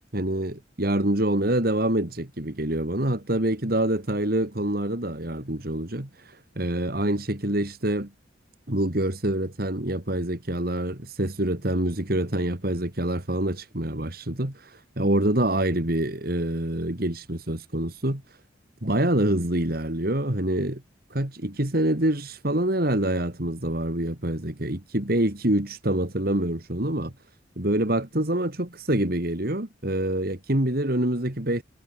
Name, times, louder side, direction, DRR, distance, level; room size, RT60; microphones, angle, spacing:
voice 1, 0.1-8.1 8.7-18.2 18.8-20.8 21.1-27.1 27.6-31.6, right 1 dB, 50° right, 2.8 m, -26 dB
head